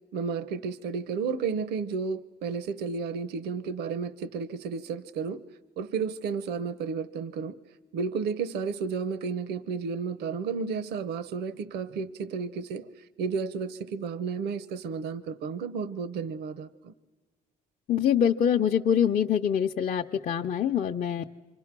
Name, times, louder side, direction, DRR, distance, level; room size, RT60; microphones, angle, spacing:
voice 1, 0.1-5.4 5.8-7.5 7.9-12.9 13.2-16.9, right 5 dB, 80° right, 16 dB, 0.8 m, -32 dB
voice 2, 17.9-21.3, left 8 dB, 45° left, 1 dB, 0.7 m, -25 dB
27.5 x 26.0 x 6.0 m, 1.3 s
cardioid pair, 110°, 17 cm